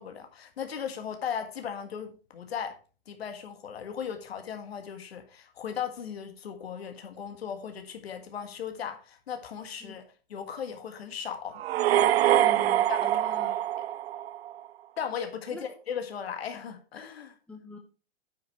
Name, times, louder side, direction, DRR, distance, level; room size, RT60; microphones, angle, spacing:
voice 1, 0.0-2.8 3.1-10.0 10.3-11.6 12.9-13.2 15.0-17.4, left 7 dB, 80° left, 6 dB, 1.7 m, -37 dB
sound 1, 11.6-14.6, right 12 dB, 75° right, 0.5 m, -24 dB
voice 2, 12.3-13.5 15.5-15.6 17.5-17.8, left 1 dB, 5° left, 2 dB, 1.1 m, -43 dB
9.2 x 5.4 x 4.5 m, 0.36 s
hypercardioid pair, 130°, 30 cm